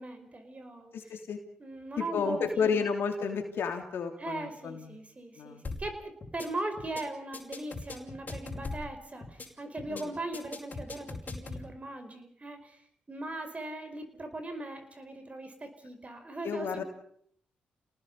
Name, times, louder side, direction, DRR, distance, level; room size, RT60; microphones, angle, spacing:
voice 1, 0.0-0.9 1.6-2.8 4.2-12.8 13.1-16.8, right 2 dB, 35° right, 7 dB, 5.0 m, -39 dB
voice 2, 0.9-1.4 2.0-5.0 5.4-5.6 9.9-10.1 16.4-16.8, left 6 dB, 70° left, 5 dB, 3.2 m, -32 dB
sound 1, 5.6-5.9 6.2-6.5 6.8-7.0 7.3-8.9 9.2-9.5 9.8-10.0 10.3-11.6, left 3 dB, 45° left, 5.4 m, -39 dB
28.5 x 19.0 x 5.5 m, 0.66 s
supercardioid pair, 45°, 4 cm